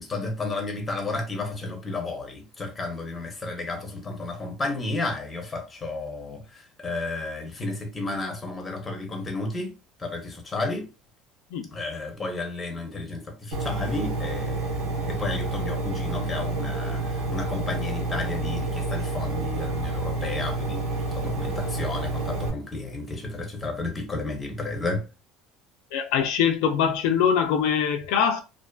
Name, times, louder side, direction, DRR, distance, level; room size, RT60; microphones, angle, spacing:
voice 1, 0.0-9.7 10.0-10.9 11.7-20.8 21.1-25.0, left 2 dB, 15° left, 0.6 m, -32 dB
Engine, 13.5-22.5, right 2 dB, 55° right, 1.0 m, -29 dB
voice 2, 25.9-28.4, left 7 dB, 75° left, 0.3 m, -23 dB
2.4 x 2.4 x 2.3 m
cardioid pair, 155°, 0 cm